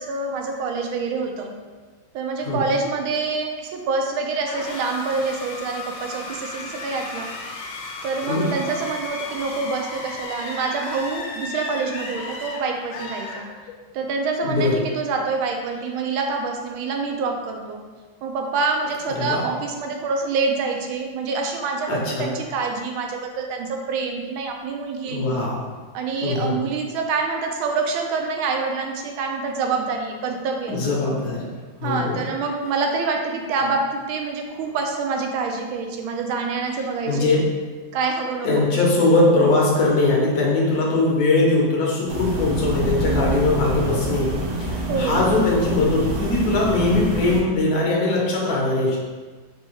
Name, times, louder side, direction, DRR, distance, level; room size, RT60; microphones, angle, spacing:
voice 1, 0.0-1.5 2.1-7.3 8.0-13.5 13.9-17.8 18.2-25.3 25.9-30.8 31.8-37.3 37.9-38.9 44.9-45.3, right 4 dB, 90° right, 2 dB, 1.4 m, -26 dB
sound 1, 4.4-14.0, left 3 dB, 85° left, 1.4 m, -35 dB
voice 2, 14.4-14.8 19.2-19.4 21.9-22.3 25.1-25.7 26.2-26.6 30.7-32.2 37.1-37.4 38.4-49.0, left 2 dB, 60° left, -3 dB, 1.3 m, -21 dB
sound 2, 42.1-47.4, right 2 dB, 65° right, 1.1 m, -26 dB
4.3 x 2.3 x 4.4 m, 1.4 s
omnidirectional pair, 2.2 m